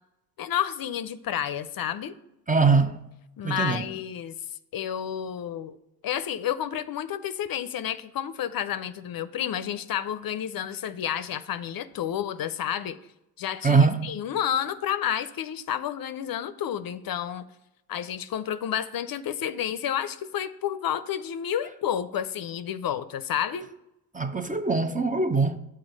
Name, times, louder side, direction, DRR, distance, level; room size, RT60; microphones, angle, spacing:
voice 1, 0.4-2.1 3.4-4.4 4.7-5.8 6.0-13.0 13.4-17.4 17.9-23.7, left 10 dB, 60° left, 0.5 m, -30 dB
voice 2, 2.5-3.0 3.4-3.8 13.6-14.1 24.1-25.6, right 4 dB, 20° right, 0.6 m, -22 dB
6.3 x 4.7 x 6.0 m
cardioid pair, 60°, 40 cm